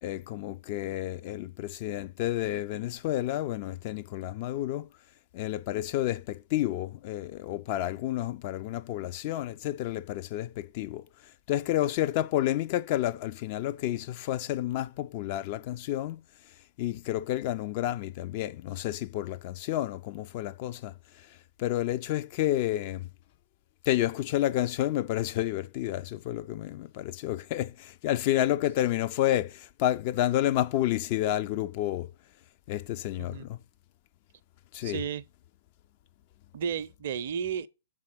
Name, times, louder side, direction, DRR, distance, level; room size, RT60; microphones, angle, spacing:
voice 1, 0.0-4.9 5.3-11.1 11.5-16.2 16.8-23.1 23.9-32.1 32.7-33.6 34.7-35.0, left 13 dB, 40° left, 0.3 m, -30 dB
voice 2, 34.8-35.2 36.5-37.7, right 7 dB, 50° right, 0.5 m, -33 dB
7.4 x 3.7 x 5.9 m
figure-of-eight pair, 115°, 0 cm